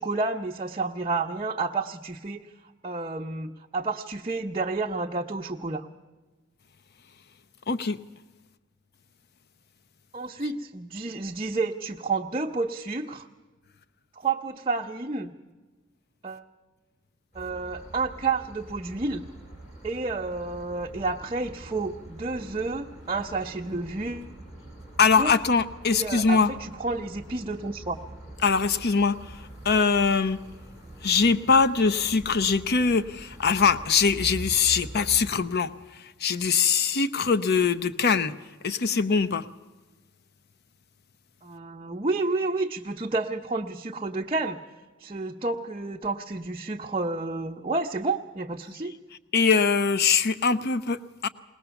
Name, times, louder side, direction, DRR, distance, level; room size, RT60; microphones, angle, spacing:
voice 1, 0.0-2.5 2.8-5.9 10.1-13.3 14.2-15.3 16.2-16.5 17.3-19.2 19.8-24.3 25.2-25.4 25.9-28.0 41.4-44.6 45.0-48.9, right 3 dB, 25° right, 0 dB, 0.8 m, -30 dB
voice 2, 7.7-8.0 25.0-26.5 28.4-30.4 31.0-38.3 38.6-39.5 49.3-51.3, left 5 dB, 55° left, 12 dB, 0.7 m, -23 dB
sound 1, 17.3-35.3, right 1 dB, 35° left, 5.6 m, -44 dB
21.5 x 18.5 x 7.0 m, 1.2 s
head